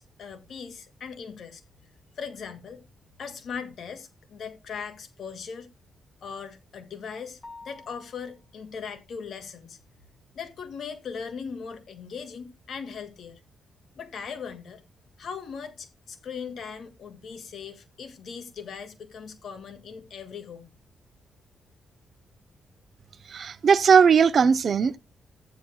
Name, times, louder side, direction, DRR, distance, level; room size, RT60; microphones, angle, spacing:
voice 1, 0.0-1.6 2.2-2.8 3.2-5.7 6.2-7.4 7.6-9.8 10.4-13.4 14.0-14.8 15.2-20.7, left 6 dB, 65° left, 2.0 m, -39 dB
sound 1, 7.4-8.5, left 3 dB, 25° left, 7.1 m, -47 dB
voice 2, 23.3-25.0, right 6 dB, 50° right, 0.6 m, -18 dB
14.5 x 9.6 x 2.2 m
cardioid pair, 110°, 0 cm